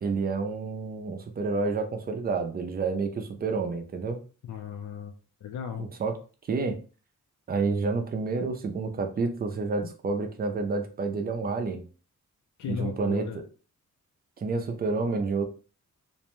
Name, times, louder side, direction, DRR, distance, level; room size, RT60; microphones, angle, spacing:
voice 1, 0.0-4.2 5.8-6.2 6.5-6.8 7.5-11.8 12.7-13.3 14.4-15.5, right 4 dB, 30° right, 5 dB, 0.4 m, -29 dB
voice 2, 4.4-5.1 5.4-5.9 9.8-9.9 12.6-13.4, left 7 dB, 70° left, 3 dB, 0.5 m, -35 dB
2.5 x 2.1 x 2.9 m, 0.36 s
wide cardioid pair, 150°, 31 cm